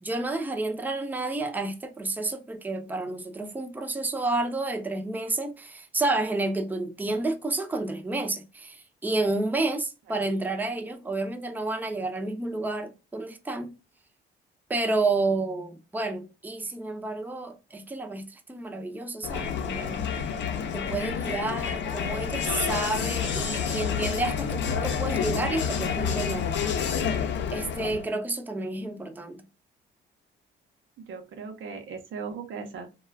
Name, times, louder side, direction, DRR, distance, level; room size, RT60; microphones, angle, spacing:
voice 1, 0.0-13.7 14.7-20.0 20.7-26.5 27.5-29.5, right 2 dB, 10° right, 0.5 m, -30 dB
Crowd, 19.2-28.1, left 7 dB, 65° left, 0.6 m, -29 dB
voice 2, 31.0-32.9, right 5 dB, 80° right, 0.7 m, -38 dB
2.3 x 2.2 x 3.2 m
cardioid pair, 90°, 20 cm